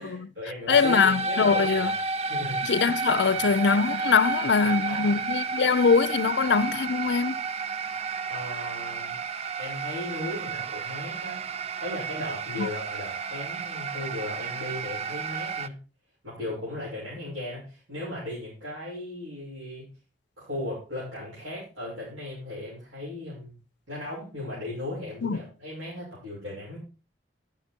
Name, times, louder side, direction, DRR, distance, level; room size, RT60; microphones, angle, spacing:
voice 1, 0.0-1.9 2.2-2.6 3.1-3.4 4.6-5.1 8.3-9.2 9.6-11.4 11.8-15.7 16.2-19.9 20.4-23.5 23.9-26.8, left 1 dB, 90° right, 6.4 m, -37 dB
voice 2, 0.7-1.9 2.6-7.4 12.6-12.7 25.2-25.4, left 5 dB, 65° left, 0.5 m, -23 dB
sound 1, 0.7-15.7, right 4 dB, 35° right, 0.5 m, -31 dB
11.5 x 8.9 x 4.4 m
head